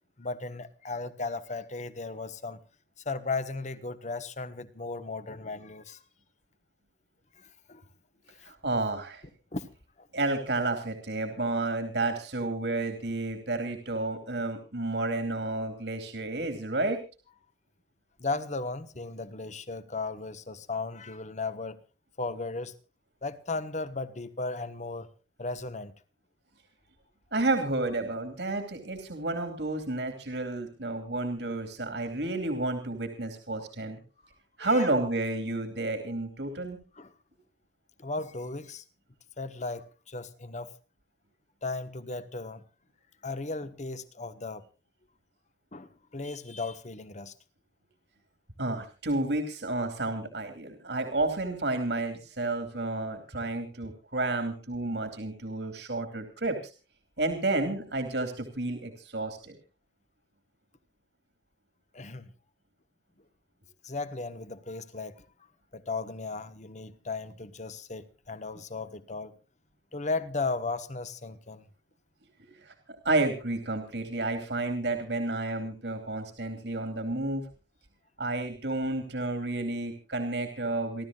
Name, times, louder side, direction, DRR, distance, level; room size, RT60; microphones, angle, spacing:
voice 1, 0.2-2.6 3.0-6.0 7.4-7.8 8.4-8.5 9.5-9.7 10.0-10.1 18.2-21.8 22.2-22.7 23.2-25.1 25.4-25.9 34.6-34.9 37.0-37.1 38.0-38.8 39.4-40.7 41.6-42.6 43.2-44.6 45.7-47.3 61.9-62.3 63.8-65.2 65.7-69.4 69.9-71.6, left 3 dB, 45° left, 1.3 m, -36 dB
voice 2, 8.5-9.2 10.1-17.0 27.3-34.0 34.6-36.8 48.6-56.6 57.2-59.6 72.6-72.7 73.0-77.4 78.2-81.1, right 2 dB, 70° right, 2.7 m, -31 dB
29.5 x 12.5 x 2.4 m
head